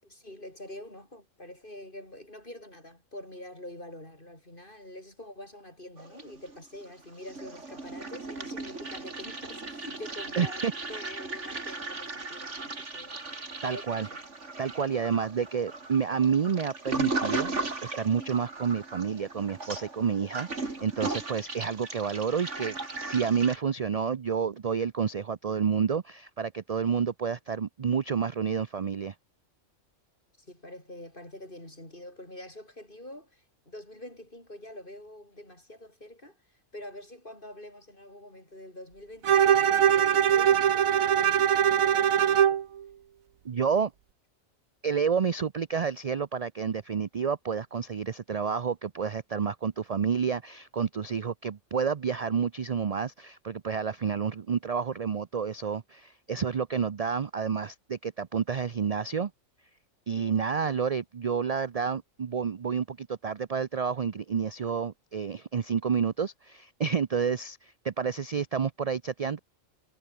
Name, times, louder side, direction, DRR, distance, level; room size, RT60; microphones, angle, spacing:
voice 1, 0.0-13.2 13.6-14.2 30.4-42.6, left 1 dB, 40° left, 8.2 m, -46 dB
Toilet flush, 6.0-6.8 7.1-23.6, right 3 dB, 60° right, 3.7 m, -37 dB
voice 2, 10.4-11.2 13.6-14.1 14.6-29.1 43.4-43.9 44.8-59.3 60.1-69.4, right 6 dB, 45° right, 0.5 m, -29 dB
Bowed string instrument, 39.2-42.6, right 9 dB, 85° right, 1.4 m, -22 dB
omnidirectional pair, 1.4 m